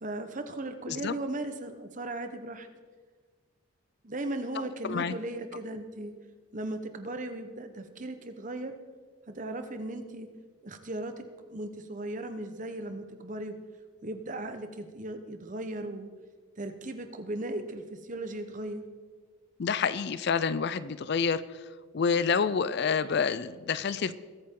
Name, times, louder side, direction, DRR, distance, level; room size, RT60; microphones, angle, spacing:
voice 1, 0.0-2.7 4.0-6.1 6.5-8.7 9.3-10.3 10.6-13.6 14.0-16.1 16.6-18.8, right 1 dB, 35° right, 7 dB, 1.0 m, -37 dB
voice 2, 19.6-21.4 21.9-24.2, left 6 dB, 50° left, 16 dB, 0.4 m, -28 dB
21.5 x 8.8 x 3.7 m, 1.5 s
head